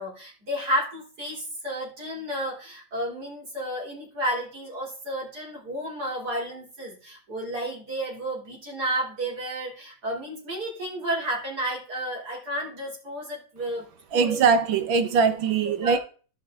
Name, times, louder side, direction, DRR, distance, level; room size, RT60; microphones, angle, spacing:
voice 1, 0.0-13.8 14.1-14.4 15.8-16.0, right 1 dB, 55° right, 4.0 m, -32 dB
voice 2, 14.1-16.0, right 5 dB, 85° right, 1.9 m, -21 dB
15.5 x 5.8 x 3.8 m
omnidirectional pair, 2.1 m